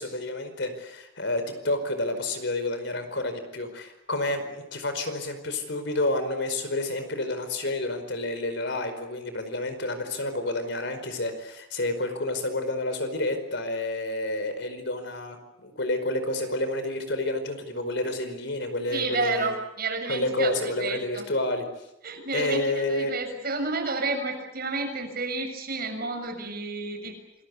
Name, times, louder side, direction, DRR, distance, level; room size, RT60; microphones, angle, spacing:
voice 1, 0.0-19.5 20.1-21.6 22.3-23.1, left 2 dB, 65° left, 8 dB, 4.9 m, -29 dB
voice 2, 18.9-21.3 22.0-27.2, right 3 dB, 50° right, 4 dB, 6.8 m, -31 dB
28.0 x 21.5 x 8.4 m, 0.87 s
head